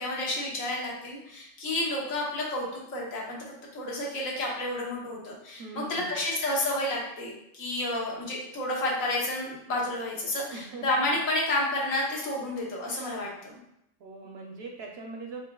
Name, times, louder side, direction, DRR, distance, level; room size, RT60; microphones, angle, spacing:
voice 1, 0.0-3.4 3.7-13.6, left 1 dB, 90° left, -3 dB, 1.4 m, -30 dB
voice 2, 5.6-6.2 10.5-10.9 14.0-15.4, right 3 dB, 65° right, 1 dB, 0.7 m, -41 dB
4.3 x 3.4 x 2.2 m, 0.80 s
omnidirectional pair, 1.3 m